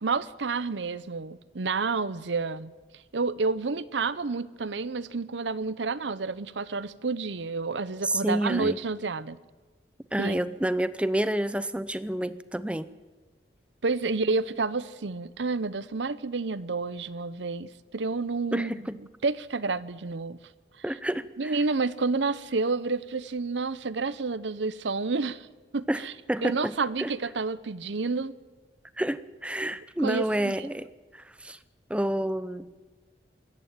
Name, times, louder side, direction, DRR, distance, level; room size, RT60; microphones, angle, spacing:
voice 1, 0.0-2.7 3.1-9.4 10.2-10.4 13.8-18.8 19.2-20.4 21.4-25.5 25.7-26.1 26.4-28.4 30.0-30.7, right 4 dB, 80° right, 0.8 m, -29 dB
voice 2, 8.0-8.8 10.1-12.9 18.5-19.0 20.8-21.6 25.9-27.1 29.0-30.9 31.1-31.6 31.9-32.9, right 1 dB, 5° right, 0.6 m, -29 dB
25.0 x 14.0 x 9.2 m
head